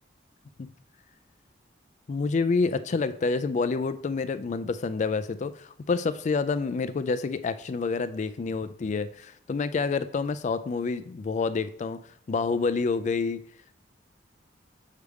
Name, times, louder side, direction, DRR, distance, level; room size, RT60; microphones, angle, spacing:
voice 1, 2.1-12.0 12.3-13.4, left 4 dB, 40° left, 13 dB, 0.3 m, -28 dB
6.5 x 3.4 x 4.7 m, 0.64 s
head